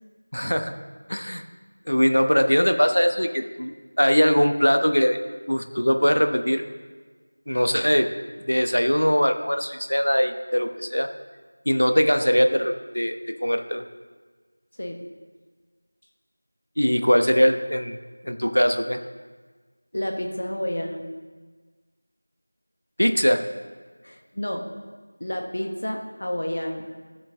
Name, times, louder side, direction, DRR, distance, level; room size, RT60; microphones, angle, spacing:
voice 1, 0.3-0.7 1.1-1.4 1.9-5.2 5.5-6.6 7.5-8.1 8.4-11.1 11.7-13.8 16.8-18.0 18.2-19.0 23.0-23.4, equal, 75° left, 7 dB, 1.0 m, -21 dB
voice 2, 19.9-21.1 24.0-24.7 25.2-26.9, left 1 dB, 50° left, 2 dB, 1.3 m, -30 dB
13.0 x 7.6 x 3.6 m, 1.4 s
figure-of-eight pair, 175°, 0 cm